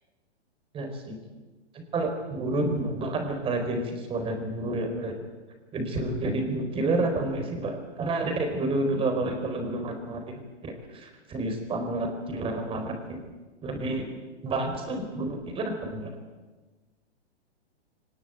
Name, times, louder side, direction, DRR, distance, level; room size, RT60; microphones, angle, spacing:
voice 1, 0.7-1.2 1.7-5.1 5.7-13.2 13.6-14.1 14.4-16.1, right 2 dB, 15° right, 5 dB, 4.4 m, -30 dB
23.0 x 19.5 x 9.3 m, 1.2 s
hypercardioid pair, 155°, 34 cm